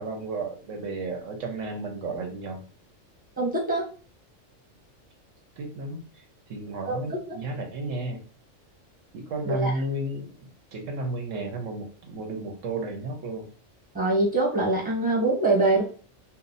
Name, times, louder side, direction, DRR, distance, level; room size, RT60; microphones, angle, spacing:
voice 1, 0.0-2.6 5.6-6.0 6.5-8.2 9.1-10.3 10.7-13.5, right 2 dB, 75° right, 3 dB, 1.2 m, -32 dB
voice 2, 3.4-3.9 6.9-7.0 7.3-7.4 9.4-9.7 13.9-15.8, right 2 dB, 5° right, -3 dB, 1.2 m, -23 dB
2.7 x 2.3 x 3.9 m, 0.39 s
omnidirectional pair, 1.3 m